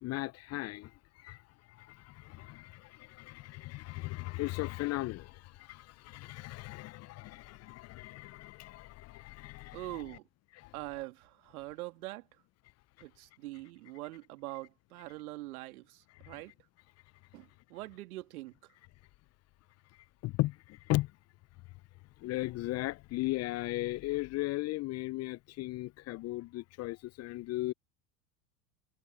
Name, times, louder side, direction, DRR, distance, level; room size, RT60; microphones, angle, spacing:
voice 1, 0.0-0.9 1.2-1.4 1.8-9.8 10.6-10.7 20.2-21.1 22.2-27.7, left 19 dB, 35° left, 0.6 m, -37 dB
voice 2, 9.7-10.3 10.7-12.3 13.0-16.5 17.3-18.5, right 19 dB, 65° right, 2.4 m, -43 dB
hypercardioid pair, 85°, 46 cm